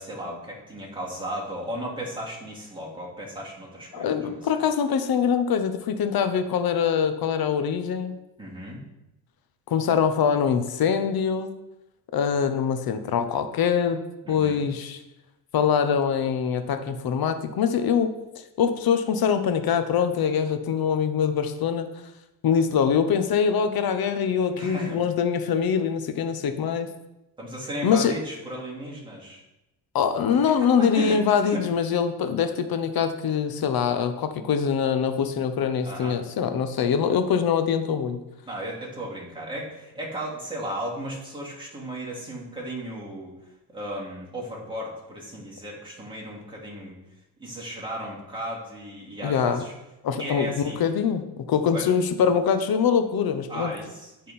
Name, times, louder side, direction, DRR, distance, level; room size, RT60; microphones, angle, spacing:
voice 1, 0.0-4.4 8.4-8.8 14.2-14.6 24.6-25.0 27.4-29.4 30.3-31.7 35.8-36.2 38.5-43.4 43.7-47.0 47.4-49.7 50.2-50.8 51.7-51.9 53.5-54.3, right 1 dB, 10° right, -5 dB, 2.4 m, -35 dB
voice 2, 3.9-8.1 9.7-11.5 12.1-14.0 14.3-15.0 15.5-18.1 18.6-21.9 22.4-26.9 27.8-28.1 29.9-38.2 49.2-49.6 50.0-50.5 50.8-53.7, left 7 dB, 50° left, 9 dB, 0.9 m, -23 dB
9.5 x 3.8 x 4.2 m, 0.93 s
cardioid pair, 85°, 45 cm